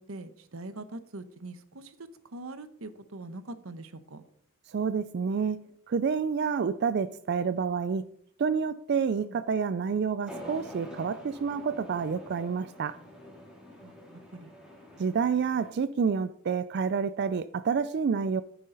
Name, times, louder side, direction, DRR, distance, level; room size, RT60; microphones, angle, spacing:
voice 1, 0.0-4.2 9.2-9.4 13.8-14.0 14.3-14.5, right 2 dB, 75° right, 1.0 m, -43 dB
voice 2, 4.7-8.0 8.4-13.0 15.0-18.4, right 6 dB, 50° right, 0.3 m, -28 dB
sound 1, 10.3-15.7, equal, 5° right, 2.8 m, -46 dB
11.0 x 9.4 x 3.9 m
head